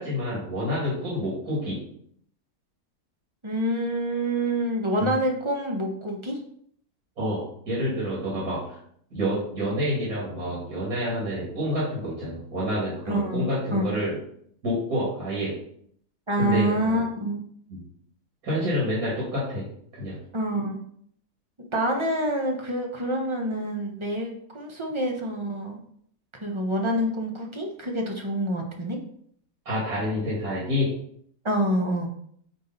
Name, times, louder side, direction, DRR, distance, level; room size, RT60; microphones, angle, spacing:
voice 1, 0.0-1.8 5.0-5.1 7.2-8.8 9.1-14.2 14.6-15.6 16.4-17.0 17.7-17.8 18.4-19.7 19.9-20.2 29.6-30.9, equal, 70° right, -8 dB, 3.0 m, -28 dB
voice 2, 3.4-6.4 13.1-13.9 16.3-17.4 20.3-20.8 21.6-25.8 26.3-29.0 31.4-32.1, right 1 dB, 20° right, 1 dB, 0.9 m, -27 dB
8.4 x 3.8 x 4.1 m, 0.65 s
omnidirectional pair, 1.6 m